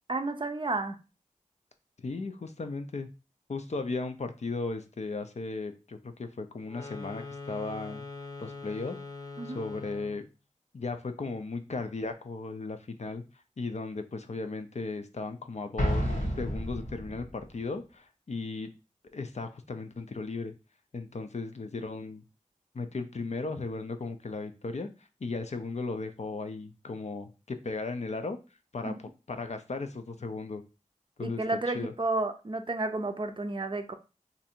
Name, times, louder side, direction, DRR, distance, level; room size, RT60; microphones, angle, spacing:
voice 1, 0.1-1.0 9.4-9.6 28.8-29.0 31.2-34.0, right 2 dB, 40° right, 7 dB, 0.5 m, -31 dB
voice 2, 2.0-3.1 3.5-8.0 8.4-9.0 9.4-10.2 10.7-13.2 13.6-18.7 19.1-20.5 20.9-22.2 22.7-24.9 25.2-28.4 28.7-29.0 29.3-30.6 31.2-31.4 31.7-31.9, left 3 dB, 60° left, 8 dB, 0.5 m, -36 dB
sound 1, 6.6-10.3, left 3 dB, 30° left, 0.8 m, -42 dB
Explosion, 15.8-17.4, equal, 85° left, 1.1 m, -30 dB
2.7 x 2.5 x 4.2 m, 0.30 s
wide cardioid pair, 55°, 13 cm